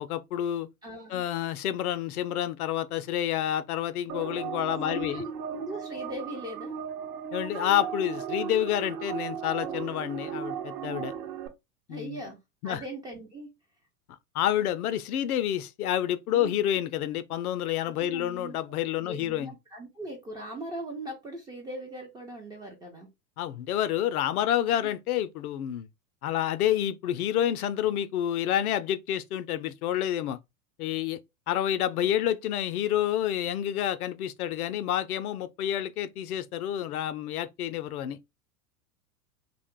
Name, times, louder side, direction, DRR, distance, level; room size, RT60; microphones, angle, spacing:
voice 1, 0.0-0.7 1.1-5.2 7.3-11.1 11.9-12.2 12.6-12.8 14.3-19.5 23.4-25.9 26.2-30.4 30.8-31.2 31.5-38.2, left 11 dB, 70° left, 0.6 m, -29 dB
voice 2, 0.8-1.2 4.9-6.8 11.9-12.4 12.6-13.5 16.3-16.5 18.0-18.6 19.0-23.1, right 1 dB, 10° right, 0.3 m, -39 dB
sound 1, 4.1-11.5, right 8 dB, 75° right, 0.9 m, -36 dB
2.4 x 2.2 x 3.6 m
hypercardioid pair, 100°, 47 cm